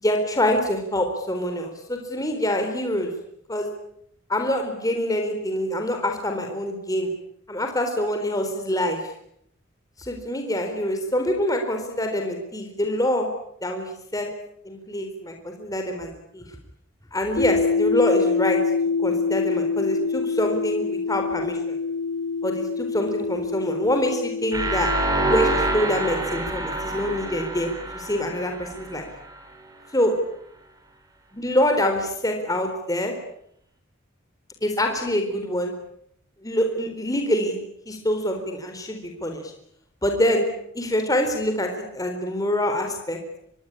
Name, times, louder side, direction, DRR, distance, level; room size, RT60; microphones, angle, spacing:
voice 1, 0.0-3.1 3.5-3.7 4.3-7.1 7.5-9.1 10.0-13.3 13.6-14.3 14.6-16.4 17.1-18.6 19.0-21.8 22.4-24.9 25.3-29.1 29.9-30.1 31.3-33.1 34.6-35.7 36.4-37.6 37.9-39.5 40.0-40.5 40.7-43.2, left 1 dB, 15° left, 4 dB, 4.0 m, -25 dB
sound 1, 17.4-26.2, left 4 dB, 65° left, 2.1 m, -26 dB
sound 2, 24.5-29.4, right 2 dB, 20° right, 5.7 m, -27 dB
25.5 x 22.0 x 9.9 m, 0.72 s
head